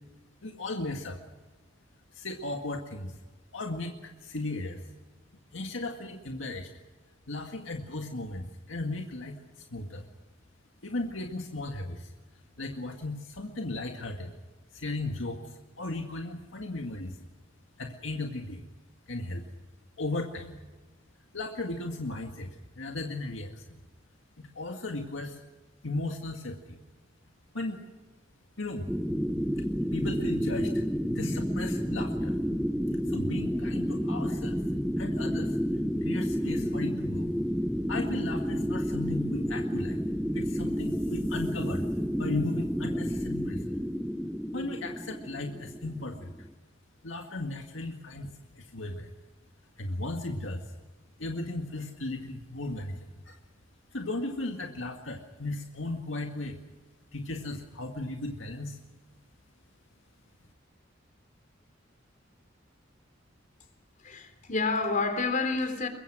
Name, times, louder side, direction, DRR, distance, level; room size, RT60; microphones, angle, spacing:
voice 1, 0.4-1.2 2.1-3.2 3.5-4.8 5.5-6.7 7.3-10.1 10.8-12.1 12.6-14.3 14.7-17.2 17.8-18.6 19.1-19.4 20.0-20.6 21.3-22.5 22.7-23.8 24.4-25.4 25.8-26.8 27.5-27.8 28.6-28.9 29.9-30.8 31.1-32.4 33.1-34.6 35.0-35.6 36.0-37.3 37.9-40.0 40.3-41.8 42.2-43.7 44.5-46.3 47.0-49.1 49.8-50.7 51.2-53.0 53.3-53.4 53.9-56.6 57.1-58.8, left 2 dB, 75° left, 2.0 m, -36 dB
sound 1, 28.9-46.5, equal, ahead, 0.7 m, -30 dB
voice 2, 64.0-65.9, left 3 dB, 45° left, 3.6 m, -29 dB
23.0 x 22.5 x 6.2 m
head